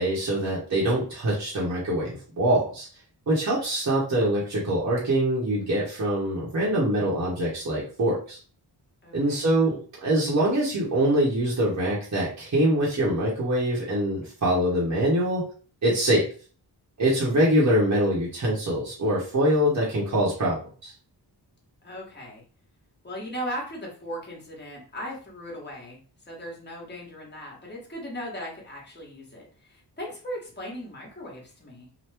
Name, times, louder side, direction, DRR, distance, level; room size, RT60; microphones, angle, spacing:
voice 1, 0.0-2.9 3.3-8.4 9.1-15.4 15.8-16.3 17.0-20.9, right 1 dB, 40° right, -6 dB, 1.0 m, -24 dB
voice 2, 9.0-9.5 21.8-22.4 23.0-26.0 26.3-31.9, equal, 25° left, -2 dB, 1.2 m, -38 dB
3.0 x 2.1 x 3.3 m, 0.40 s
wide cardioid pair, 130°, 43 cm